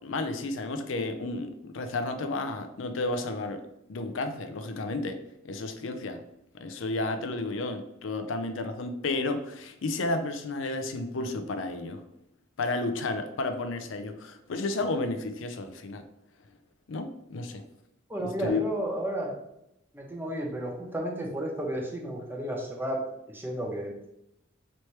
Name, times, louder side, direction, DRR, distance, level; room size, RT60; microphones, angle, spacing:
voice 1, 0.0-3.6 3.9-5.2 5.4-6.2 6.6-12.0 12.6-16.0 16.9-17.6 18.2-18.7, left 2 dB, 70° left, 7 dB, 0.5 m, -32 dB
voice 2, 18.1-19.4 19.9-23.9, right 1 dB, 10° right, -1 dB, 0.8 m, -32 dB
3.2 x 3.1 x 4.3 m, 0.82 s
head